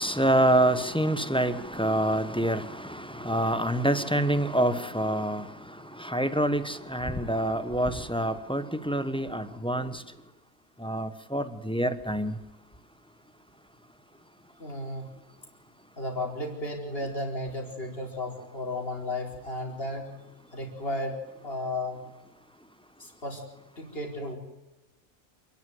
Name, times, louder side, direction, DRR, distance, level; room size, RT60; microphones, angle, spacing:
voice 1, 0.0-5.5 6.0-10.0 10.8-12.3, right 1 dB, 5° left, 1.1 m, -26 dB
voice 2, 14.6-15.1 16.0-20.1 20.5-22.0 23.0-23.4 23.8-24.4, left 1 dB, 40° left, 4.7 m, -34 dB
28.5 x 11.5 x 9.6 m
omnidirectional pair, 1.5 m